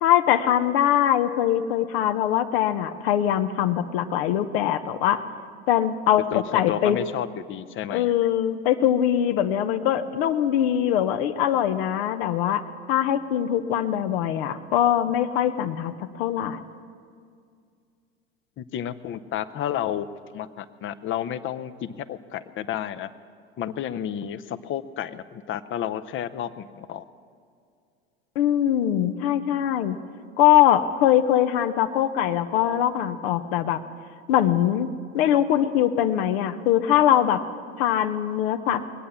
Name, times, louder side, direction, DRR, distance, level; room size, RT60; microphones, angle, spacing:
voice 1, 0.0-5.2 5.7-7.0 7.9-12.6 12.9-16.6 28.4-30.0 30.4-33.8 34.3-34.9 35.1-37.4 37.8-38.8, left 11 dB, 65° left, 9 dB, 0.9 m, -22 dB
voice 2, 6.3-8.1 18.6-20.1 20.3-23.1 23.6-27.0, left 10 dB, 40° left, 14 dB, 0.7 m, -31 dB
21.5 x 8.6 x 7.0 m, 2.3 s
hypercardioid pair, 80°, 32 cm